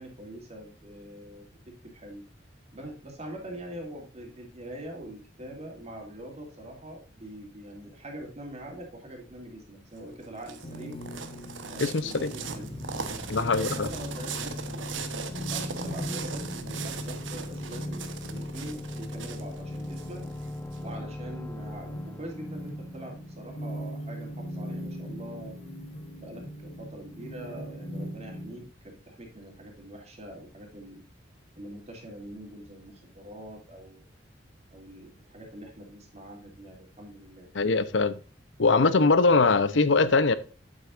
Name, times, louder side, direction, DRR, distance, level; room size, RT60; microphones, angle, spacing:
voice 1, 0.0-2.2 2.7-11.0 11.7-12.8 13.4-18.0 18.3-20.2 20.8-25.6 26.2-31.0 31.6-34.0 34.7-37.5, right 1 dB, 35° right, 2.8 m, -44 dB
sound 1, 10.0-20.8, right 6 dB, 85° right, 1.1 m, -39 dB
sound 2, 10.6-28.6, equal, 30° left, 1.4 m, -41 dB
voice 2, 11.8-12.3 13.3-13.9 37.5-38.2 38.6-40.3, left 3 dB, 70° left, 0.7 m, -22 dB
sound 3, 12.2-23.7, left 1 dB, 10° left, 0.3 m, -39 dB
8.4 x 8.0 x 2.5 m
head